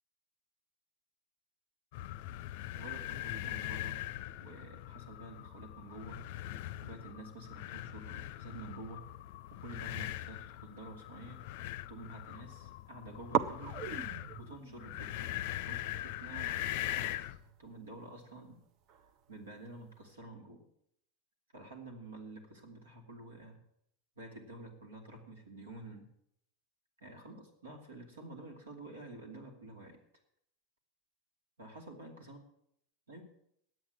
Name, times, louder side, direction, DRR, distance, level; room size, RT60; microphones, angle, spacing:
sound 1, 1.9-17.4, left 14 dB, 60° left, 0.5 m, -41 dB
voice 1, 2.7-4.0 4.4-6.2 6.8-9.0 9.5-11.4 11.9-13.8 14.4-15.3 15.7-18.6 19.3-20.6 21.5-23.6 24.2-26.1 27.0-30.0 31.6-32.4 33.1-33.2, right 2 dB, 85° right, 4 dB, 2.8 m, -49 dB
sound 2, 9.7-11.6 11.8-12.5 12.8-12.9 13.3-20.1, right 8 dB, 45° right, 0.8 m, -41 dB
9.3 x 8.8 x 9.5 m, 0.73 s
hypercardioid pair, 90°, 0 cm